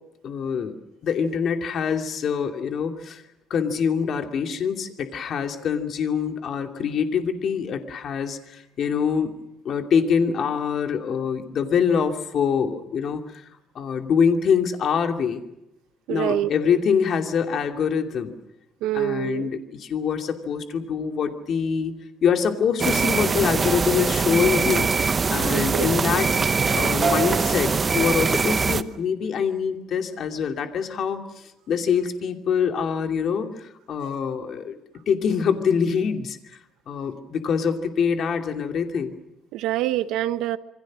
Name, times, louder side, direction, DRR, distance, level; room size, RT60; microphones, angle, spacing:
voice 1, 0.2-0.7 1.0-3.2 3.5-9.3 9.6-13.4 13.7-15.4 16.1-18.3 18.9-21.9 22.2-24.9 25.3-26.3 26.7-34.7 35.1-36.4 36.9-39.2, left 6 dB, 45° left, 5 dB, 2.7 m, -24 dB
voice 2, 16.1-16.5 18.8-19.5 25.5-25.9 39.5-40.6, right 13 dB, 80° right, 12 dB, 1.1 m, -25 dB
sound 1, 22.8-28.8, right 5 dB, 25° right, 0.8 m, -22 dB
27.5 x 24.0 x 6.3 m, 0.82 s
cardioid pair, 160°, 0 cm